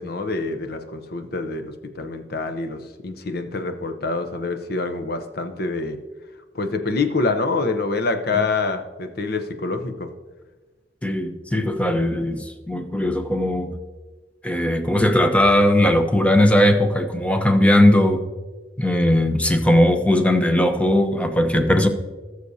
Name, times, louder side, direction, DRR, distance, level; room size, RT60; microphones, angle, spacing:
voice 1, 0.0-6.0 6.5-10.1, left 3 dB, 60° left, 7 dB, 0.8 m, -26 dB
voice 2, 11.0-13.7 14.4-18.2 18.8-21.9, left 1 dB, 10° left, 6 dB, 0.8 m, -18 dB
19.0 x 6.4 x 2.8 m, 1.3 s
head